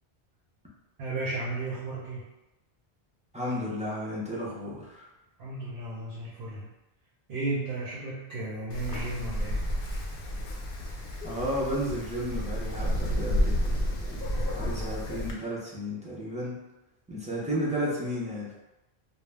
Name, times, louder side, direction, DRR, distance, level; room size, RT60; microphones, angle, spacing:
voice 1, 1.0-2.3 5.4-6.7 7.3-9.6, right 2 dB, 70° right, -7 dB, 0.9 m, -34 dB
voice 2, 3.3-5.1 11.2-16.6 17.1-18.5, equal, 10° right, -7 dB, 0.4 m, -33 dB
Wind, 8.7-15.3, equal, 65° left, 0.7 m, -31 dB
2.5 x 2.0 x 3.3 m, 1.0 s
omnidirectional pair, 1.1 m